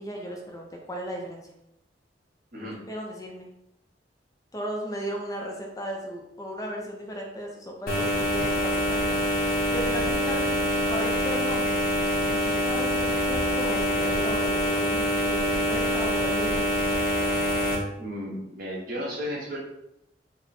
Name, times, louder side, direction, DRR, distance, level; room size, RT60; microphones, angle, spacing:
voice 1, 0.0-1.4 2.6-3.5 4.5-9.2 9.7-11.8 12.3-16.9, equal, 20° left, 1 dB, 0.5 m, -36 dB
sound 1, 7.9-17.8, equal, 55° left, 0.8 m, -25 dB
voice 2, 18.0-19.6, equal, 55° right, -4 dB, 1.3 m, -34 dB
4.1 x 2.1 x 4.2 m, 0.82 s
head